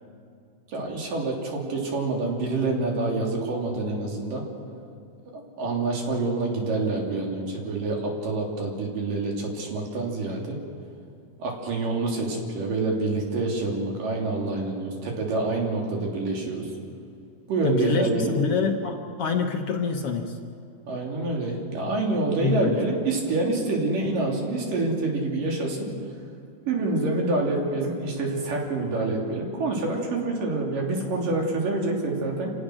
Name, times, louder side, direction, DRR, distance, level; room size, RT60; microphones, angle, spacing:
voice 1, 0.7-4.4 5.3-10.6 11.4-16.7 17.5-18.3 20.9-25.9 26.7-32.5, right 2 dB, 90° right, 0 dB, 4.8 m, -27 dB
voice 2, 17.6-20.4 22.4-22.8, left 5 dB, 60° left, 3 dB, 1.7 m, -26 dB
28.5 x 17.5 x 6.4 m, 2.4 s
omnidirectional pair, 3.7 m